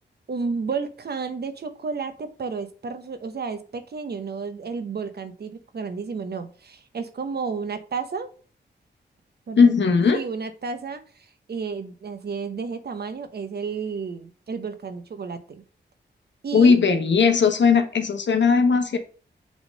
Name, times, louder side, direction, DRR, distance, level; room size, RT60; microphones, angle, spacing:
voice 1, 0.3-8.3 9.5-9.7 10.1-11.0 11.5-15.6 16.4-16.8, right 5 dB, 60° right, 10 dB, 0.9 m, -32 dB
voice 2, 9.6-10.2 16.5-19.0, left 5 dB, 75° left, 7 dB, 1.1 m, -18 dB
6.2 x 3.7 x 5.1 m, 0.40 s
wide cardioid pair, 85°, 19 cm